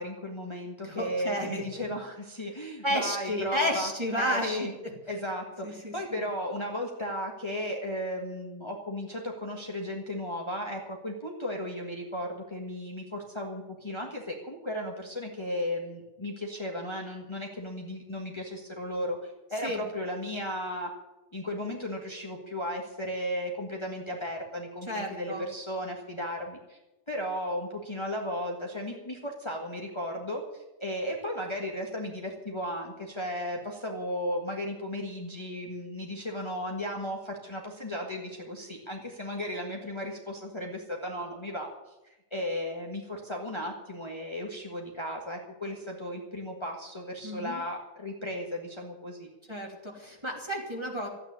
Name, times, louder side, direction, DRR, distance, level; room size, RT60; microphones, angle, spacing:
voice 1, 0.0-3.9 4.2-4.7 5.1-20.9 21.3-26.8 27.1-41.7 42.0-49.3, equal, 20° left, 0 dB, 1.7 m, -35 dB
voice 2, 0.8-1.9 2.8-4.7 5.6-6.2 19.6-19.8 24.9-25.4 47.2-47.6 49.5-51.1, equal, 20° right, 0 dB, 3.0 m, -32 dB
14.0 x 9.1 x 9.5 m, 1.0 s
omnidirectional pair, 1.4 m